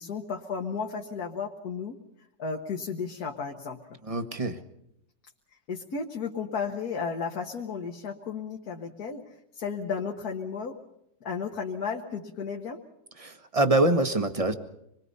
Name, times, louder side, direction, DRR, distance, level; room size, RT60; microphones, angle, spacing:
voice 1, 0.0-2.0 2.4-3.8 5.7-10.8 11.2-12.8, left 5 dB, 60° left, 1 dB, 1.9 m, -34 dB
voice 2, 4.1-4.6 13.2-14.5, right 2 dB, 20° right, 8 dB, 1.3 m, -25 dB
26.5 x 22.0 x 5.5 m, 0.79 s
omnidirectional pair, 1.9 m